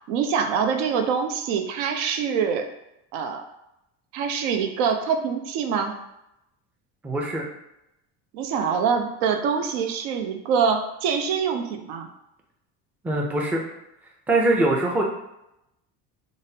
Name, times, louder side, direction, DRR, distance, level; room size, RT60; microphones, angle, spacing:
voice 1, 0.1-2.7 3.1-3.4 4.1-5.9 8.3-12.1, right 6 dB, 85° right, 5 dB, 0.6 m, -25 dB
voice 2, 7.0-7.5 13.0-13.6 14.3-15.0, right 2 dB, 5° right, -1 dB, 0.3 m, -22 dB
3.8 x 2.0 x 2.7 m, 0.85 s
supercardioid pair, 110°, 40 cm